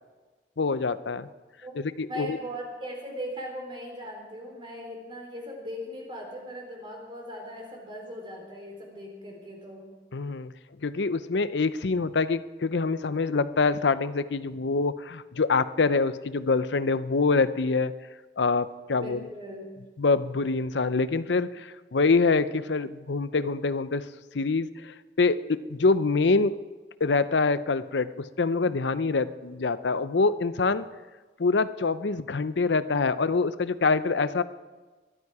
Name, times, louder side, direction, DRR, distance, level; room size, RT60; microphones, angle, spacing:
voice 1, 0.6-1.3 2.0-2.4 10.1-10.5 10.8-17.9 18.4-19.2 20.0-24.0 24.3-25.4 25.7-26.5 27.0-28.1 28.4-30.9 31.4-34.4, left 4 dB, 80° left, 14 dB, 0.6 m, -25 dB
voice 2, 2.1-9.9 18.9-19.7, equal, 30° right, 0 dB, 4.0 m, -39 dB
21.5 x 12.5 x 4.8 m, 1.3 s
head